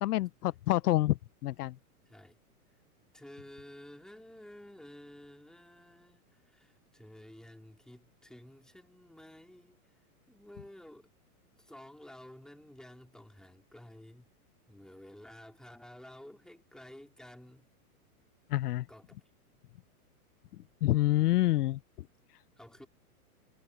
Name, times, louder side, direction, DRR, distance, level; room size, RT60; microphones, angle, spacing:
voice 1, 0.0-1.2 1.4-1.7 18.5-18.8 20.8-21.8, left 16 dB, 90° left, 0.6 m, -27 dB
voice 2, 2.0-2.4 3.1-9.8 10.3-11.1 11.6-14.3 14.7-17.7 18.9-19.2 22.6-22.9, left 1 dB, ahead, 3.3 m, -52 dB
hypercardioid pair, 145°, 44 cm